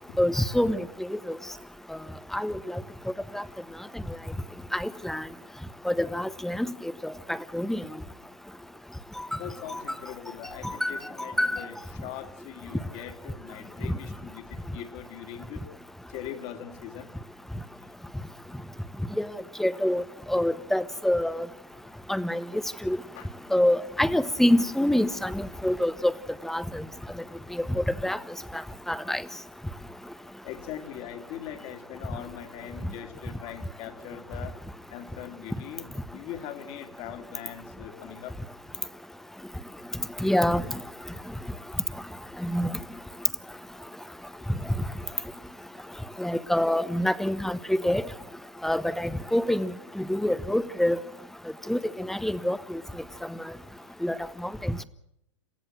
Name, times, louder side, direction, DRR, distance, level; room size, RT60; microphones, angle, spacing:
voice 1, 0.2-1.4 2.3-2.8 3.3-3.4 4.7-5.2 5.8-6.7 7.0-7.8 9.2-9.3 9.7-9.8 10.6-11.6 19.2-19.3 19.6-20.0 20.3-21.5 22.1-22.4 22.8-23.0 23.5-26.1 26.4-26.8 27.6-28.2 28.9-29.2 40.2-40.6 42.4-42.7 46.2-48.0 48.6-51.0 51.7-52.6 54.0-54.1 54.4-54.8, left 1 dB, ahead, 15 dB, 1.0 m, -26 dB
voice 2, 9.3-14.4 14.7-15.6 16.1-17.1 23.2-23.3 30.4-34.5 34.9-38.3, left 10 dB, 40° left, 7 dB, 2.6 m, -41 dB
28.0 x 16.0 x 7.8 m, 0.81 s
hypercardioid pair, 115°, 16 cm